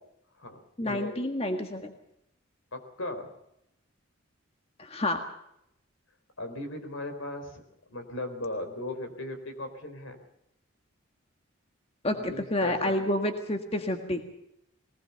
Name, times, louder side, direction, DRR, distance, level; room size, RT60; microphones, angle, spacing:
voice 1, 0.8-1.9 4.8-5.2 12.0-14.2, left 1 dB, 30° left, 5 dB, 1.7 m, -29 dB
voice 2, 2.7-3.3 6.4-7.6 7.9-10.2 12.2-13.2, left 1 dB, 75° left, 7 dB, 4.1 m, -37 dB
22.0 x 19.0 x 6.9 m, 0.78 s
head